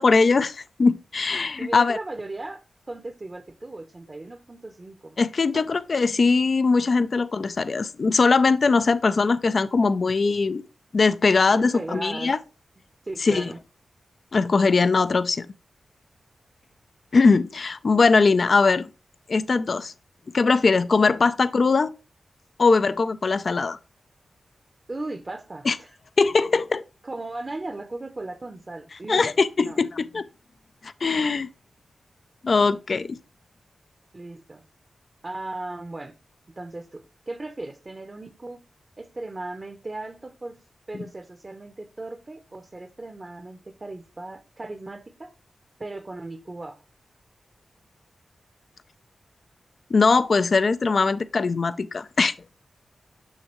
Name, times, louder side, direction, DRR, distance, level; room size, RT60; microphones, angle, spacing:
voice 1, 0.0-2.0 5.2-10.6 10.9-12.4 13.2-13.5 14.3-15.5 17.1-18.9 19.3-19.9 20.3-21.9 22.6-23.8 25.7-25.8 26.2-26.8 29.1-30.3 30.8-31.5 32.4-33.2 49.9-52.3, left 4 dB, 60° left, 0.4 m, -21 dB
voice 2, 1.6-5.2 5.5-5.6 11.5-12.4 13.0-13.6 24.9-26.0 27.0-29.8 34.1-34.6 35.2-36.1 36.6-38.6 39.0-40.6 40.9-45.3 45.8-46.8, right 2 dB, 40° right, 0.8 m, -37 dB
6.3 x 6.3 x 3.1 m
cardioid pair, 45°, 0 cm